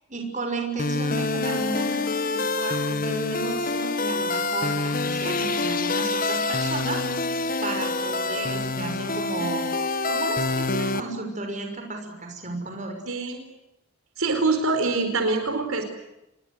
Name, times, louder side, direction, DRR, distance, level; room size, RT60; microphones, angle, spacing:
voice 1, 0.1-7.0 7.6-9.7 10.1-13.0, right 3 dB, 35° right, 4 dB, 6.1 m, -33 dB
sound 1, 0.8-11.0, left 3 dB, 40° left, 1.3 m, -26 dB
voice 2, 13.1-13.4 14.2-15.8, right 3 dB, 80° right, 6 dB, 4.6 m, -25 dB
28.0 x 22.5 x 8.1 m, 0.89 s
head